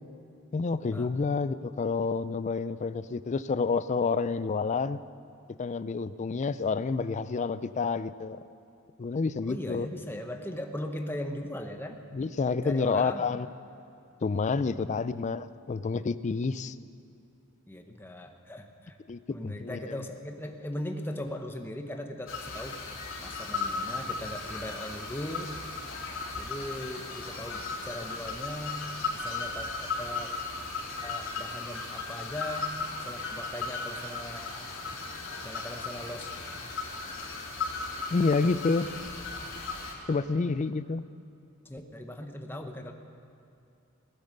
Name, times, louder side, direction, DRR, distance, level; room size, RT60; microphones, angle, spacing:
voice 1, 0.5-5.0 5.6-8.4 9.0-9.9 12.1-13.5 14.2-16.8 19.1-20.0 38.1-38.9 40.1-41.1, left 4 dB, 35° left, 15 dB, 0.4 m, -29 dB
voice 2, 9.5-12.0 12.5-13.2 14.6-15.2 17.7-19.0 19.3-22.8 23.2-25.5 26.3-28.8 29.1-30.3 31.0-32.7 33.0-34.5 35.4-36.3 41.6-42.9, left 1 dB, 10° left, 4 dB, 1.0 m, -39 dB
sound 1, 22.3-39.9, left 3 dB, 65° left, 3.0 m, -36 dB
18.5 x 10.5 x 6.6 m, 2.6 s
head